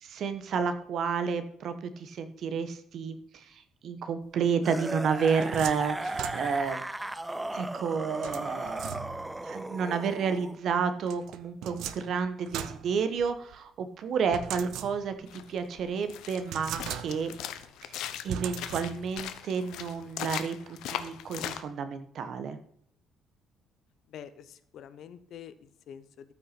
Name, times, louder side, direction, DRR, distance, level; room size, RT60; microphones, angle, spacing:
voice 1, 0.0-6.8 7.5-8.8 9.4-17.3 17.8-18.0 18.2-22.6, right 6 dB, 45° right, 9 dB, 1.1 m, -31 dB
sound 1, 4.6-10.6 11.7-11.8, right 1 dB, 5° right, 0.4 m, -37 dB
sound 2, 4.9-6.8 8.2-9.4 11.1-13.6 14.3-15.3 15.8-15.9 16.4-17.5 18.3-19.3, right 10 dB, 70° right, 0.9 m, -39 dB
sound 3, 15.3-21.6, left 11 dB, 70° left, 1.0 m, -39 dB
voice 2, 24.1-26.3, left 9 dB, 50° left, 13 dB, 0.8 m, -47 dB
14.0 x 5.9 x 5.8 m, 0.69 s
cardioid pair, 180°, 0 cm